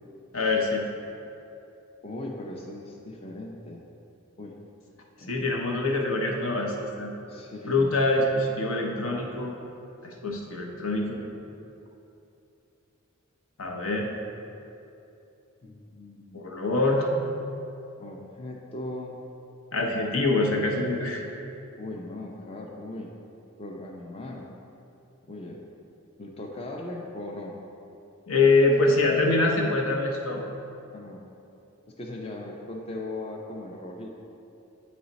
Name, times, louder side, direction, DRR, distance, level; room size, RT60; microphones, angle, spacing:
voice 1, 0.3-0.8 5.3-7.1 7.7-9.5 10.0-11.2 13.6-14.1 16.3-17.1 19.7-21.2 28.3-30.4, left 2 dB, 80° left, 0 dB, 0.8 m, -24 dB
voice 2, 2.0-3.8 4.4-4.5 5.2-5.5 7.3-7.9 15.6-16.4 18.0-19.2 21.8-23.1 23.6-24.5 25.2-25.6 26.2-27.5 30.9-31.2 32.0-34.1, left 2 dB, 30° left, 0 dB, 0.4 m, -38 dB
8.9 x 3.1 x 4.0 m, 2.8 s
head